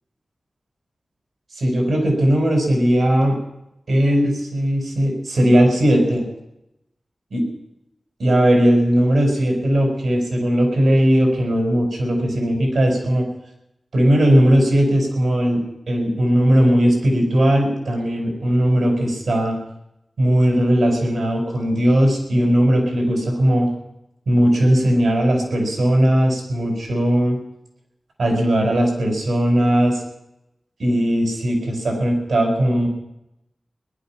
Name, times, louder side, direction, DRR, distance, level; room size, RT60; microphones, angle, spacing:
voice 1, 1.6-3.4 3.9-6.3 7.3-7.4 8.2-13.3 13.9-15.6 15.9-19.6 20.2-23.7 24.3-27.4 28.2-30.0 30.8-32.9, equal, 80° right, 1 dB, 4.9 m, -18 dB
19.0 x 11.5 x 5.8 m, 0.86 s
wide cardioid pair, 85°, 0 cm